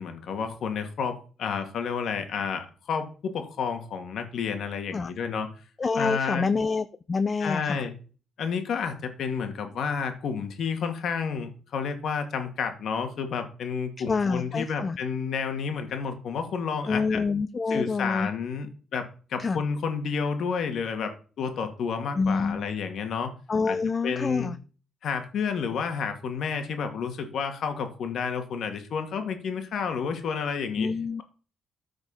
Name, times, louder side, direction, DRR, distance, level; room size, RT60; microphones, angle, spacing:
voice 1, 0.0-5.5 5.9-6.5 7.4-7.9 8.4-17.2 17.7-21.1 21.4-23.3 23.7-23.8 24.0-24.5 25.0-30.9, left 6 dB, 65° left, 6 dB, 2.5 m, -30 dB
voice 2, 5.8-7.8 14.1-15.0 16.9-18.3 19.4-19.6 22.2-22.7 23.5-24.6 30.8-31.2, left 4 dB, 35° left, 13 dB, 0.6 m, -27 dB
14.0 x 5.2 x 5.8 m, 0.38 s
cardioid pair, 90°, 0 cm